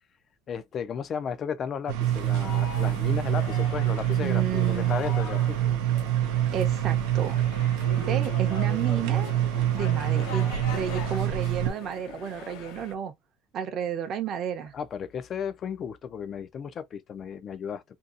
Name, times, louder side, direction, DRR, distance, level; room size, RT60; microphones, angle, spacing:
voice 1, 0.5-5.7 14.7-17.8, left 7 dB, 35° left, 0.3 m, -34 dB
sound 1, 1.9-11.7, right 12 dB, 85° right, 0.5 m, -26 dB
sound 2, 2.0-12.9, left 6 dB, 75° left, 0.7 m, -42 dB
voice 2, 4.2-4.9 6.5-7.4 8.0-9.3 9.7-13.1 13.5-14.7, right 8 dB, 40° right, 0.6 m, -32 dB
2.7 x 2.3 x 2.4 m
cardioid pair, 145°, 0 cm